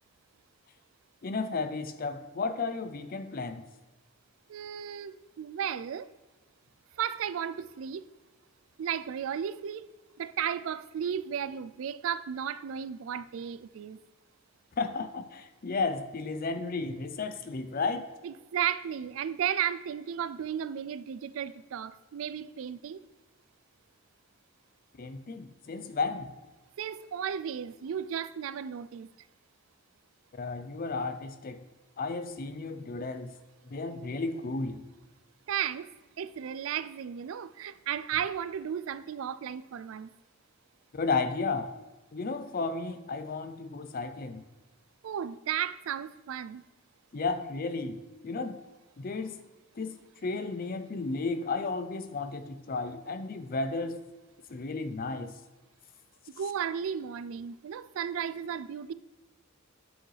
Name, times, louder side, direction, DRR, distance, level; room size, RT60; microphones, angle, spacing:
voice 1, 1.2-3.7 14.8-18.1 25.0-26.3 30.3-31.6 32.0-33.4 33.6-34.8 40.9-41.7 42.1-44.4 47.1-48.6 49.0-49.4 49.8-54.0 54.5-55.3, left 3 dB, 45° left, 0.5 m, -33 dB
voice 2, 4.5-6.1 7.0-8.1 8.8-9.9 10.2-14.0 18.2-23.0 26.8-29.1 35.5-35.9 36.2-40.1 45.0-46.6 56.3-58.9, right 8 dB, 75° right, 0.3 m, -34 dB
7.8 x 6.2 x 3.3 m
head